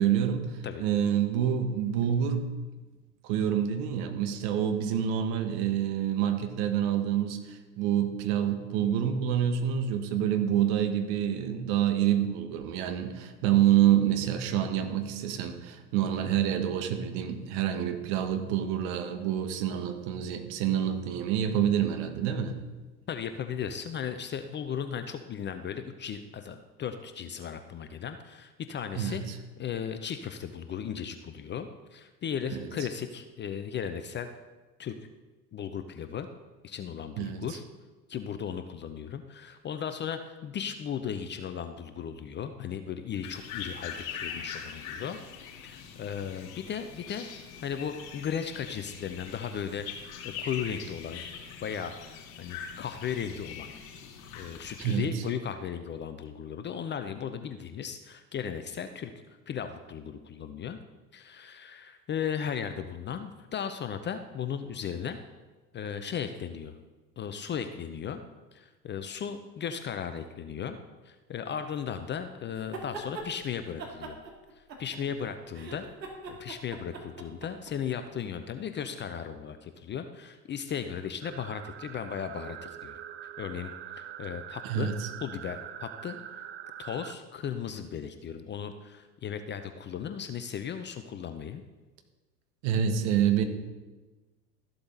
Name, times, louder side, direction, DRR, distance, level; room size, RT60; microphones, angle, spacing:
voice 1, 0.0-2.5 3.2-22.6 29.0-29.4 32.5-32.7 37.2-37.4 54.8-55.2 84.6-85.1 92.6-93.4, right 9 dB, 50° right, 7 dB, 1.7 m, -27 dB
voice 2, 23.1-29.2 29.6-34.3 34.8-34.9 35.5-36.3 36.6-37.6 38.1-45.2 45.4-47.3 47.6-49.8 50.2-51.2 51.6-53.7 54.3-60.8 61.1-65.2 65.7-66.7 67.2-68.2 68.5-70.8 71.0-74.2 74.6-75.9 76.3-83.0 83.4-84.9 85.2-86.2 86.8-91.6, left 8 dB, 20° left, 8 dB, 0.7 m, -36 dB
sound 1, 43.2-55.0, left 7 dB, 45° left, 3.5 m, -42 dB
sound 2, 72.6-73.3 73.8-75.2 75.5-77.7, right 3 dB, 80° right, 2.5 m, -41 dB
sound 3, 81.2-87.1, right 10 dB, 25° right, 0.6 m, -43 dB
13.5 x 11.5 x 4.0 m, 1.2 s
figure-of-eight pair, 85°, 50 cm